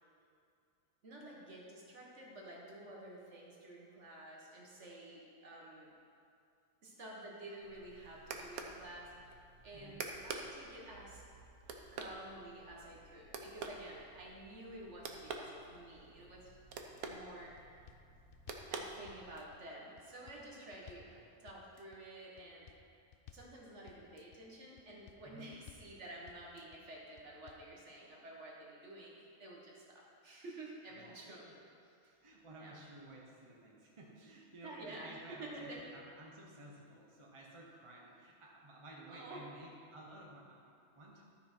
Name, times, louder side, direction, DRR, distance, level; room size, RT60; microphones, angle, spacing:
voice 1, 1.0-5.9 6.8-9.1 9.6-11.2 11.9-16.5 16.8-17.5 18.7-22.7 23.3-31.5 32.5-32.8 34.6-35.8 39.1-39.4, right 1 dB, 50° right, -3 dB, 1.7 m, -51 dB
sound 1, 7.6-19.5, right 4 dB, 75° right, 1.2 m, -48 dB
voice 2, 9.7-10.0 21.1-21.3 25.2-25.5 30.9-31.5 32.0-41.2, right 1 dB, 25° right, -2 dB, 0.8 m, -55 dB
sound 2, 17.0-17.2 17.6-18.7 19.1-19.6 20.0-21.1 21.5-22.0 22.4-22.8 23.1-23.5 23.9-24.4 24.8-25.2 25.5-25.9 26.3-26.8 27.2-27.7, left 8 dB, 85° left, 0.5 m, -58 dB
12.5 x 5.7 x 4.5 m, 2.4 s
omnidirectional pair, 1.6 m